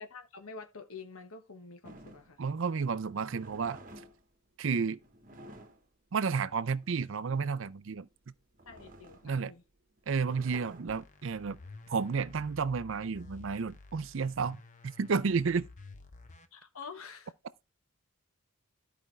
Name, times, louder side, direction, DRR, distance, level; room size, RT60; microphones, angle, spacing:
voice 1, 0.0-2.4 8.7-9.6 16.5-17.3, left 4 dB, 85° left, 1.1 m, -47 dB
sound 1, 1.8-13.2, right 1 dB, 40° right, 1.1 m, -54 dB
voice 2, 2.4-3.8 4.6-5.0 6.1-8.1 9.2-9.5 10.1-11.6 11.9-15.7, right 5 dB, 65° right, 0.5 m, -31 dB
sound 2, 10.9-16.5, left 3 dB, 35° left, 0.8 m, -52 dB
13.5 x 5.0 x 3.2 m
head